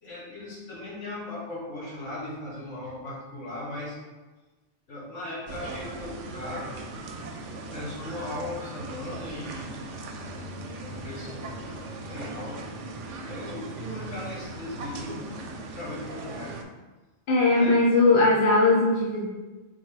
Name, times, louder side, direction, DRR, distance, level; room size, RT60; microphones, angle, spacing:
voice 1, 0.0-4.0 4.9-6.7 7.7-9.8 10.6-11.7 12.0-12.6 13.2-15.3 15.7-16.6 17.5-17.7, left 1 dB, 90° left, -6 dB, 1.7 m, -38 dB
sound 1, 5.5-16.6, right 2 dB, 85° right, 0.9 m, -39 dB
voice 2, 17.3-19.3, left 2 dB, 60° left, -4 dB, 1.1 m, -20 dB
4.0 x 3.8 x 3.3 m, 1.2 s
omnidirectional pair, 1.2 m